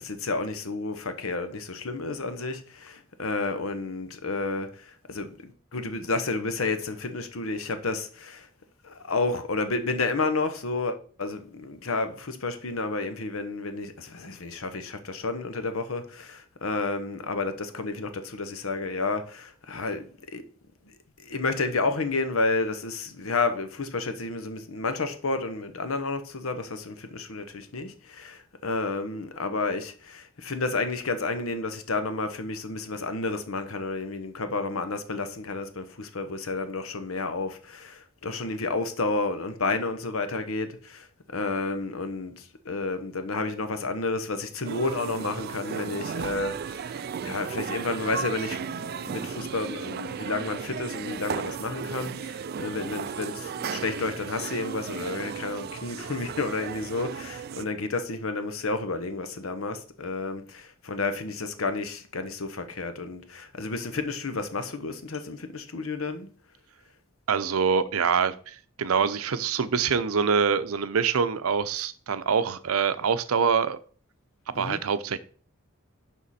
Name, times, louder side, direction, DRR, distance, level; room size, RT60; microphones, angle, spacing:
voice 1, 0.0-8.5 8.8-20.4 21.2-41.1 41.3-66.3 74.5-74.8, left 3 dB, 75° left, 1.0 m, -31 dB
sound 1, 44.6-57.6, right 6 dB, 45° right, 0.3 m, -35 dB
voice 2, 67.3-73.8 74.6-75.2, right 6 dB, 90° right, 0.6 m, -25 dB
11.0 x 3.7 x 4.2 m
head